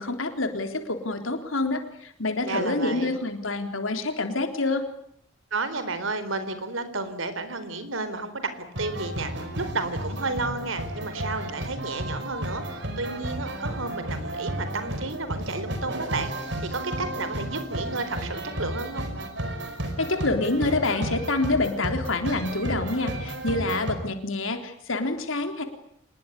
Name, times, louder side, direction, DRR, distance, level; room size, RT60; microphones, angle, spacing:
voice 1, 0.0-4.8 20.0-25.6, left 2 dB, 85° left, 6 dB, 3.7 m, -27 dB
voice 2, 2.4-3.2 5.5-8.5 8.8-9.3 9.6-19.1, right 3 dB, 85° right, 11 dB, 4.3 m, -32 dB
sound 1, 8.7-23.9, right 1 dB, 60° right, 5.3 m, -33 dB
26.5 x 21.0 x 10.0 m, 0.69 s
head